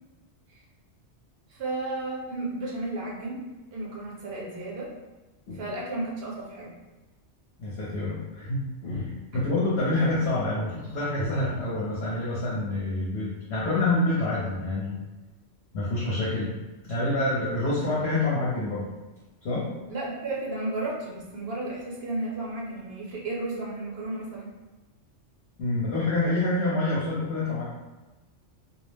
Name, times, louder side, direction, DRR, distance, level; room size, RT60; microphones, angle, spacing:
voice 1, 1.5-4.9 5.5-6.7 19.9-24.5, right 2 dB, 60° right, -4 dB, 0.8 m, -33 dB
voice 2, 7.6-15.0 15.7-16.5 16.8-18.9 19.4-19.7 25.6-27.6, left 2 dB, 65° left, -7 dB, 0.9 m, -27 dB
2.3 x 2.0 x 3.1 m, 1.1 s
omnidirectional pair, 1.3 m